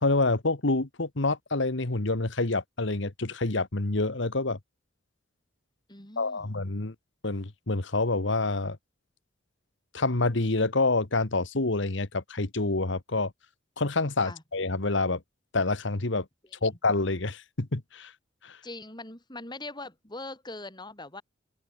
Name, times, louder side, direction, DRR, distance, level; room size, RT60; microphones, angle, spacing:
voice 1, 0.0-4.6 6.2-6.9 7.2-8.8 9.9-13.3 13.8-15.2 15.5-16.2 16.6-18.1 18.4-18.6, left 3 dB, 65° left, 1.6 m, -27 dB
voice 2, 5.9-6.6 14.2-14.4 18.6-21.2, left 2 dB, 20° left, 7.5 m, -41 dB
head